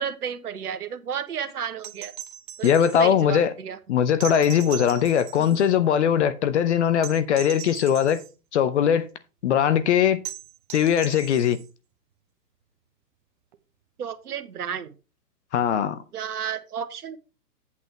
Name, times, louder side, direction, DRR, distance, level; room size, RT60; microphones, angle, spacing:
voice 1, 0.0-2.1 2.6-3.8 5.4-5.7 14.0-14.9 16.1-17.2, right 8 dB, 65° right, 1.3 m, -32 dB
sound 1, 1.8-3.1 4.2-5.7 7.0-8.3 10.2-11.7 13.5-13.6, right 12 dB, 30° right, 0.8 m, -39 dB
voice 2, 2.6-3.5 3.9-8.2 8.5-9.1 9.4-10.2 10.7-11.6 15.5-16.0, left 9 dB, 45° left, 0.8 m, -20 dB
8.4 x 8.4 x 3.3 m
figure-of-eight pair, 125°, 49 cm